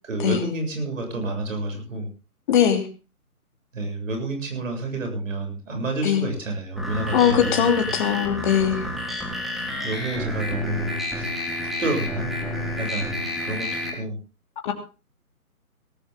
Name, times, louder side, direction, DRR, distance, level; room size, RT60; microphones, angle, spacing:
voice 1, 0.0-2.1 3.7-8.0 9.8-11.3 11.6-12.3 12.8-14.2, right 2 dB, 60° right, 4 dB, 7.5 m, -29 dB
voice 2, 2.5-2.8 6.0-6.3 7.1-8.8 14.6-14.7, left 8 dB, 35° left, 4 dB, 3.0 m, -20 dB
sound 1, 6.8-13.9, left 1 dB, ahead, 1.7 m, -30 dB
18.0 x 14.5 x 3.7 m, 0.33 s
figure-of-eight pair, 155°, 44 cm